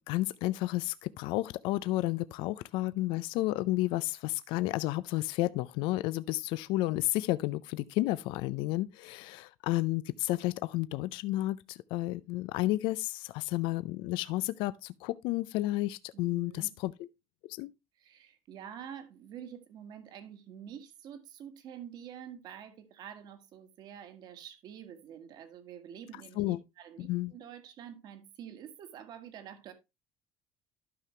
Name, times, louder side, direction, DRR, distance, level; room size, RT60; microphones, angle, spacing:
voice 1, 0.0-16.9 17.5-17.7 26.4-26.6 27.0-27.3, left 17 dB, 75° left, 0.4 m, -31 dB
voice 2, 16.1-16.7 17.9-29.7, right 9 dB, 55° right, 1.6 m, -47 dB
12.0 x 5.8 x 3.2 m
cardioid pair, 135°, 8 cm